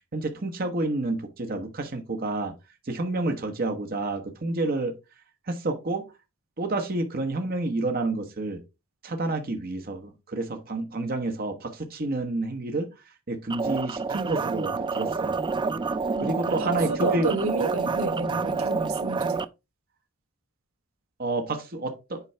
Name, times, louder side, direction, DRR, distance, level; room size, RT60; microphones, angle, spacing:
voice 1, 0.1-2.5 2.9-4.9 5.5-6.1 6.6-8.6 9.0-12.9 13.3-15.4 16.2-17.3 21.2-22.2, right 2 dB, 45° right, 1.0 m, -29 dB
sound 1, 13.5-19.4, right 4 dB, 20° right, 0.3 m, -28 dB
voice 2, 16.1-19.4, right 3 dB, 90° right, 1.3 m, -30 dB
8.2 x 4.5 x 3.3 m
head